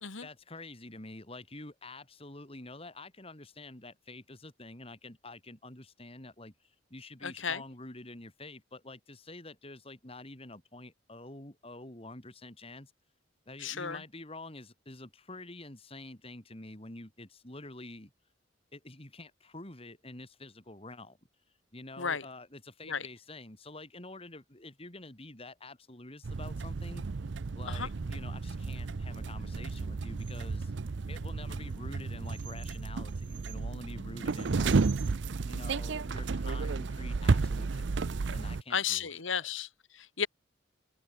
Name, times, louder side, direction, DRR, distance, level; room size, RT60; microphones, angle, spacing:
voice 1, 0.2-12.9 13.5-18.1 18.7-21.2 21.7-27.0 27.5-30.7 31.1-34.8 35.4-39.5, left 2 dB, 30° left, 3.2 m, -47 dB
voice 2, 7.2-7.6 13.6-14.0 22.0-22.3 22.8-23.1 27.7-27.9 38.7-40.3, left 7 dB, 90° left, 2.1 m, -34 dB
sound 1, 26.2-38.6, right 4 dB, 65° right, 0.6 m, -32 dB
head